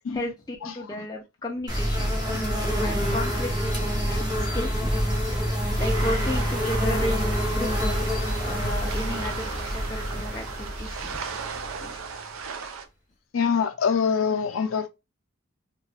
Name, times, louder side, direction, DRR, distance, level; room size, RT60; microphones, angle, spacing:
voice 1, 0.1-5.0 5.5-11.2 11.8-12.0, left 1 dB, 20° left, 0.3 m, -34 dB
sound 1, 1.7-12.3, equal, 20° right, 0.7 m, -27 dB
sound 2, 5.8-12.8, right 5 dB, 85° right, 0.5 m, -37 dB
voice 2, 13.3-14.9, left 6 dB, 80° left, 0.4 m, -24 dB
2.6 x 2.3 x 3.2 m
head